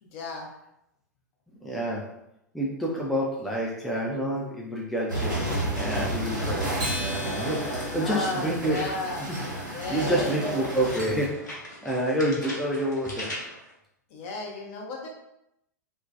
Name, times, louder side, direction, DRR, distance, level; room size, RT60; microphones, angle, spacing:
voice 1, 0.0-0.5 7.9-9.3 9.7-10.7 14.1-15.1, left 2 dB, 45° left, 0 dB, 0.6 m, -34 dB
voice 2, 1.6-2.1 2.5-8.8 9.9-13.3, right 1 dB, ahead, -4 dB, 0.3 m, -28 dB
sound 1, 5.1-11.3, right 1 dB, 90° right, 0.9 m, -31 dB
Acoustic guitar, 6.8-9.4, equal, 45° right, 0.6 m, -38 dB
sound 2, 8.4-9.4 10.4-13.7, left 1 dB, 85° left, 0.8 m, -40 dB
2.3 x 2.1 x 2.5 m, 0.81 s
figure-of-eight pair, 100°, 10 cm